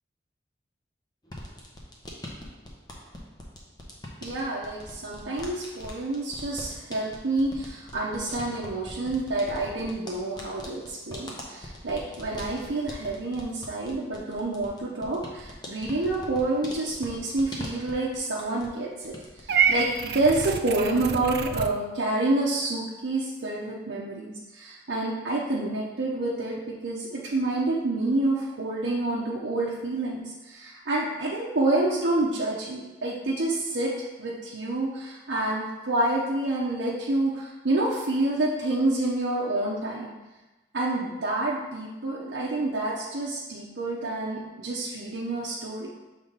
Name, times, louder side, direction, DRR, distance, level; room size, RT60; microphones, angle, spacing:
sound 1, 1.2-18.8 19.0-19.7, left 1 dB, 25° left, 0.8 m, -42 dB
voice 1, 4.2-19.2 19.4-33.9 34.2-40.1 40.7-45.9, right 2 dB, 90° right, -5 dB, 0.8 m, -28 dB
Purr / Meow, 19.5-21.7, right 6 dB, 60° right, 0.4 m, -27 dB
6.8 x 3.5 x 4.0 m, 1.1 s
head